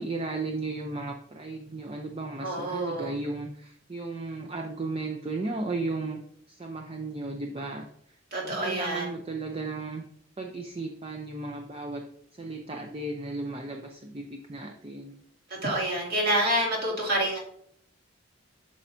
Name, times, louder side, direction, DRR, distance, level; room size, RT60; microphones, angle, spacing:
voice 1, 0.0-6.2 6.5-7.9 8.6-10.0 10.4-12.0 12.4-15.2, right 3 dB, 30° right, 2 dB, 0.5 m, -35 dB
voice 2, 2.4-3.1 8.3-9.1 15.5-17.4, right 1 dB, 50° right, -2 dB, 2.5 m, -27 dB
8.5 x 6.1 x 2.7 m, 0.67 s
head